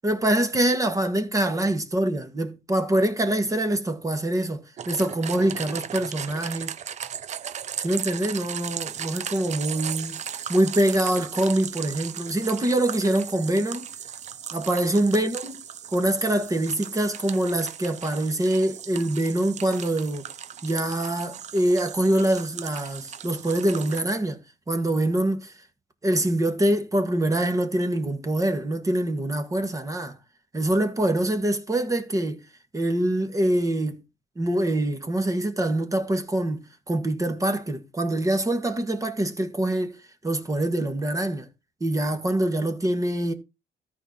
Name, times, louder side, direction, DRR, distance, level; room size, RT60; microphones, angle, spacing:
voice 1, 0.0-6.7 7.8-10.2 10.5-13.9 14.5-15.5 15.9-20.3 20.6-24.4 24.7-25.5 26.0-30.2 30.5-32.4 32.7-34.0 34.4-40.0 40.2-41.5 41.8-43.3, right 1 dB, 20° right, 1.8 m, -24 dB
sound 1, 4.8-24.0, right 9 dB, 45° right, 0.7 m, -37 dB
13.5 x 4.8 x 5.7 m
cardioid pair, 110°, 17 cm